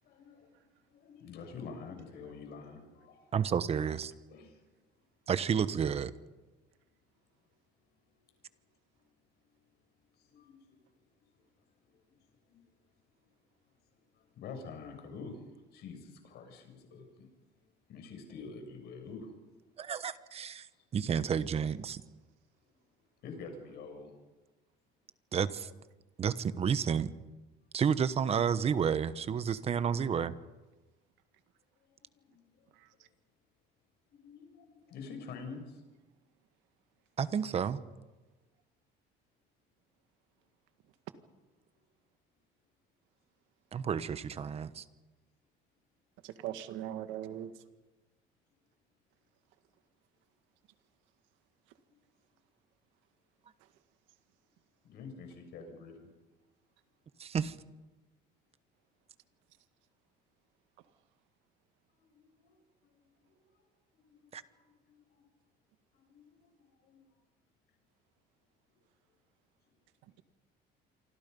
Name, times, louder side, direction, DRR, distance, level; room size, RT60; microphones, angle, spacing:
voice 1, 0.0-3.4 4.3-5.1 7.1-7.5 7.8-9.1 9.4-19.5 19.8-19.9 20.7-20.9 22.6-24.2 31.8-33.1 34.1-35.8 51.9-52.0 54.8-56.1 61.9-65.3 65.9-67.2 68.7-68.8 69.7-69.8, left 4 dB, 60° left, 6.9 m, -50 dB
voice 2, 3.3-4.1 5.3-6.1 19.8-20.7 20.9-22.0 25.3-25.7 26.2-27.1 27.7-30.3 37.2-37.8 43.7-44.8 57.2-57.5 64.3-64.4, right 7 dB, 35° right, 1.1 m, -31 dB
voice 3, 46.2-47.5, right 12 dB, 85° right, 1.9 m, -40 dB
28.0 x 25.0 x 5.5 m
cardioid pair, 145°, 19 cm